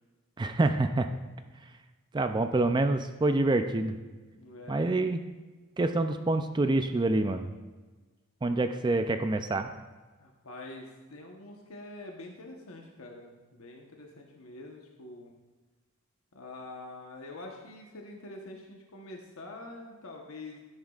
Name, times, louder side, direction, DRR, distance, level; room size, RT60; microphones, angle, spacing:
voice 1, 0.4-1.1 2.1-4.0 4.7-5.2 5.8-7.5 8.4-9.7, right 2 dB, 20° right, 8 dB, 0.4 m, -26 dB
voice 2, 4.3-4.9 10.2-15.3 16.3-20.6, left 2 dB, 80° left, 0 dB, 1.1 m, -45 dB
12.5 x 10.5 x 2.4 m, 1.3 s
head